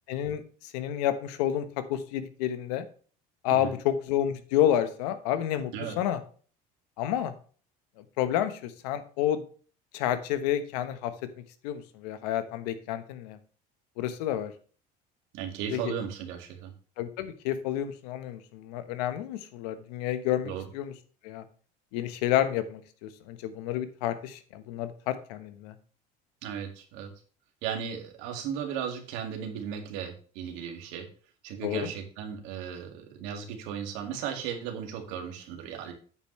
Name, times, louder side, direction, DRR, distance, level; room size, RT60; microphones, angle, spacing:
voice 1, 0.1-0.4 0.7-2.8 3.4-5.7 6.0-6.2 7.0-7.3 8.2-9.4 9.9-11.1 11.6-13.4 14.0-14.5 15.7-15.9 17.0-20.9 21.2-21.4 21.9-25.7 31.6-31.9, left 11 dB, 85° left, 11 dB, 1.2 m, -29 dB
voice 2, 15.3-16.7 20.4-20.7 26.4-27.1 27.6-31.1 31.4-35.9, right 8 dB, 75° right, 4 dB, 2.2 m, -36 dB
8.9 x 7.3 x 3.2 m, 0.41 s
supercardioid pair, 95°, 20 cm